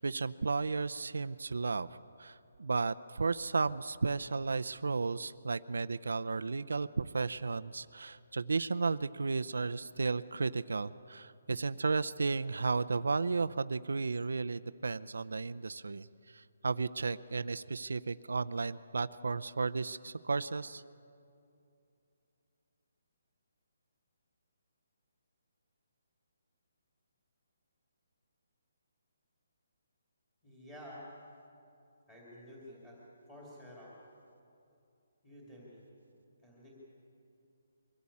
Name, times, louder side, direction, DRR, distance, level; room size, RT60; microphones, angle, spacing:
voice 1, 0.0-1.9 2.2-16.1 16.3-20.8, right 4 dB, 90° right, 13 dB, 0.5 m, -34 dB
voice 2, 30.4-31.1 32.1-33.0 33.3-33.9 35.2-35.8 36.4-36.8, equal, 10° left, -6 dB, 2.6 m, -51 dB
23.0 x 16.5 x 8.5 m, 2.6 s
hypercardioid pair, 180°, 0 cm